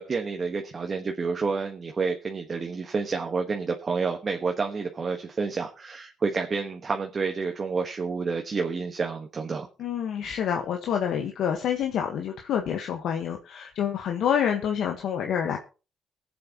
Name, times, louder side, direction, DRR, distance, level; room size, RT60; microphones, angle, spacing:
voice 1, 0.0-9.7, right 4 dB, 40° right, 3 dB, 1.3 m, -29 dB
voice 2, 9.8-15.6, left 8 dB, 75° left, 3 dB, 1.3 m, -27 dB
23.0 x 7.8 x 3.0 m, 0.34 s
cardioid pair, 90°, 0 cm